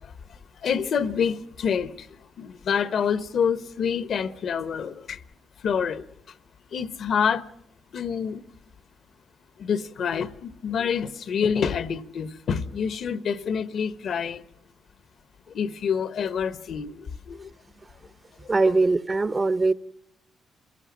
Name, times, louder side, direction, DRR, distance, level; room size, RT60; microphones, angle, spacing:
voice 1, 0.0-5.2 5.6-6.4 6.7-7.5 7.9-8.4 9.6-14.4 15.5-17.5 18.4-18.5, left 7 dB, 65° left, 0.9 m, -27 dB
voice 2, 18.5-19.7, right 3 dB, 30° right, 0.7 m, -21 dB
27.0 x 16.5 x 7.3 m
cardioid pair, 75°, 0 cm